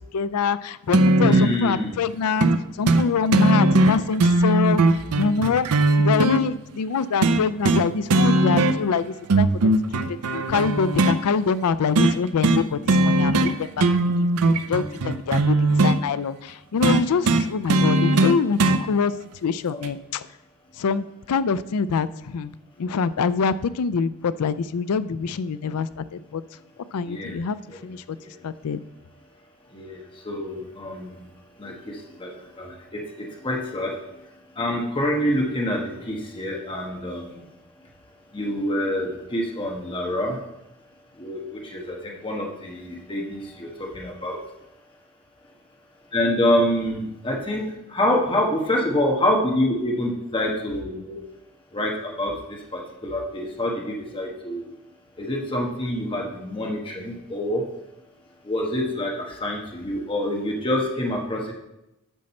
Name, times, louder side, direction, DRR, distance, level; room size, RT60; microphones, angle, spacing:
voice 1, 0.1-2.5 2.8-5.7 6.0-9.7 10.3-19.1 19.4-20.3 20.8-22.5 22.8-26.4 26.9-27.6 27.8-28.0 28.4-28.8, left 5 dB, 80° left, 15 dB, 0.4 m, -25 dB
sound 1, 0.9-1.5 2.4-2.6 2.9-3.0 3.3-6.4 7.2-7.8 8.1-8.9 9.3-11.2 12.0-12.2 12.4-12.6 12.9-13.5 13.8-16.0 16.8-18.8 19.8-19.9, right 2 dB, 80° right, 0.6 m, -19 dB
voice 2, 1.2-2.0 19.7-19.8 27.0-27.4 27.7-27.8 28.2-28.3 29.7-31.2 31.6-33.9 34.6-37.5 38.3-40.4 41.2-44.4 46.1-51.2 51.7-54.7 55.2-57.6 58.4-61.5, left 1 dB, 25° left, -1 dB, 1.3 m, -26 dB
10.0 x 6.5 x 4.2 m, 0.90 s
head